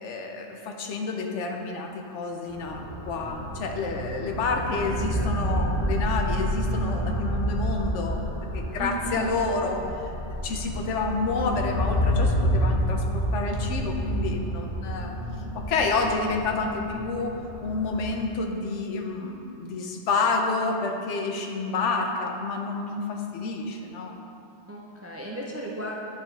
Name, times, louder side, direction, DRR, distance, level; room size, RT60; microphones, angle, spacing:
voice 1, 0.0-8.3 8.5-9.9 10.4-15.1 15.5-17.4 17.6-24.2, left 3 dB, 85° left, 3 dB, 1.0 m, -29 dB
sound 1, 2.5-18.1, equal, 70° left, 1.4 m, -29 dB
voice 2, 8.8-9.2 24.7-25.9, right 1 dB, 25° right, -2 dB, 0.3 m, -35 dB
9.4 x 4.7 x 3.3 m, 2.7 s
omnidirectional pair, 1.2 m